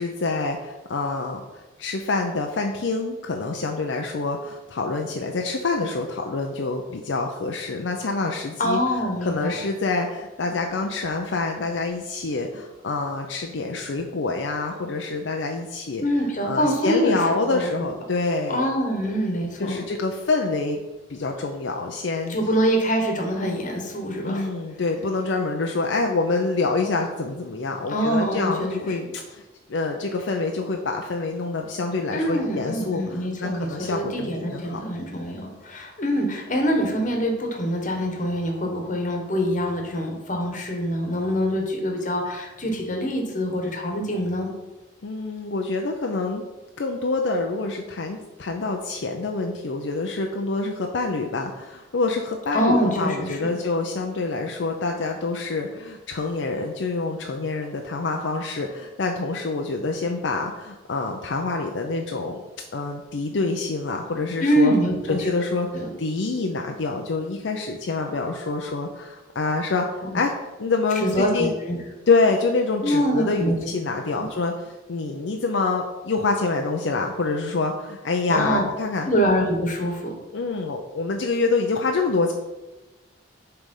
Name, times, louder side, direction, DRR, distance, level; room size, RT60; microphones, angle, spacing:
voice 1, 0.0-8.8 9.2-16.0 16.4-18.7 19.6-20.8 21.1-22.4 24.2-29.4 29.7-34.8 45.0-46.4 46.8-62.4 62.7-64.7 65.1-70.3 70.6-71.5 72.1-79.1 80.3-82.3, left 3 dB, 80° left, 2 dB, 0.6 m, -26 dB
voice 2, 8.6-9.6 16.0-17.9 18.5-19.8 22.3-24.5 27.9-29.0 32.1-44.5 52.5-53.6 64.4-65.2 65.7-65.9 71.0-71.8 72.8-73.6 74.1-74.3 78.3-78.7 79.1-80.1, equal, 45° left, 2 dB, 1.3 m, -24 dB
7.2 x 3.4 x 5.4 m, 1.1 s
head